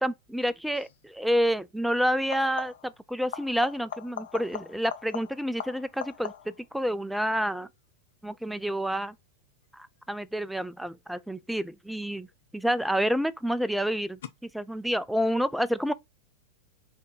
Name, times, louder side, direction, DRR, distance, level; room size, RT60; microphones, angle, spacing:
voice 1, 0.0-7.7 8.2-9.1 9.7-12.3 12.5-15.9, equal, ahead, 0.3 m, -29 dB
sound 1, 0.7-1.0 2.2-3.0 3.3-6.7 12.1-12.7 14.2-14.3, left 9 dB, 60° left, 0.5 m, -40 dB
4.2 x 2.6 x 4.5 m
figure-of-eight pair, 90°, 0 cm